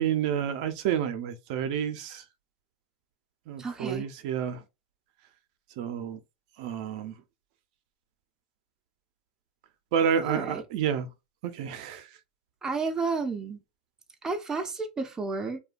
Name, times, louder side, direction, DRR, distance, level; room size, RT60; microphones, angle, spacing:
voice 1, 0.0-2.2 3.5-4.6 5.8-6.2 6.6-7.2 9.9-11.1 11.4-12.1, right 8 dB, 65° right, 0.5 m, -29 dB
voice 2, 3.6-4.1 10.2-10.6 12.6-13.6 14.2-15.6, right 4 dB, 15° right, 0.5 m, -31 dB
2.7 x 2.2 x 2.4 m
supercardioid pair, 120°, 4 cm